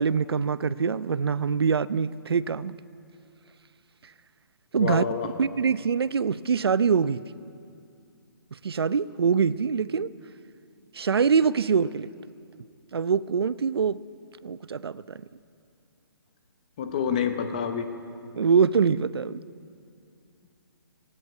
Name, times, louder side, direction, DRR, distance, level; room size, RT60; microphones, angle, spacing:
voice 1, 0.0-2.7 4.7-5.0 5.4-7.2 8.6-10.1 10.9-12.1 12.9-14.0 14.4-15.2 18.3-19.4, right 6 dB, 75° right, 17 dB, 0.6 m, -24 dB
voice 2, 4.8-5.3 16.8-17.9, left 7 dB, 20° left, 8 dB, 0.8 m, -28 dB
17.5 x 17.5 x 9.4 m, 2.5 s
hypercardioid pair, 180°, 13 cm